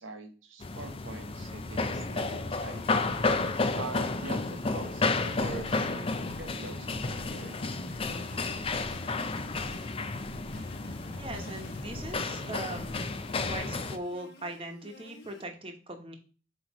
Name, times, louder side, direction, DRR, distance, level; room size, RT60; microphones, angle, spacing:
voice 1, 0.0-2.8 3.7-7.8, right 2 dB, 85° right, 6 dB, 1.2 m, -43 dB
sound 1, 0.6-14.0, left 3 dB, 30° left, 0.5 m, -32 dB
sound 2, 1.0-3.5 3.9-13.6, equal, 80° left, 2.6 m, -48 dB
sound 3, 1.8-15.4, left 1 dB, 55° left, 1.0 m, -53 dB
voice 2, 11.2-13.0 13.5-16.2, right 1 dB, 30° right, 4 dB, 1.1 m, -40 dB
7.9 x 3.2 x 4.8 m, 0.37 s
head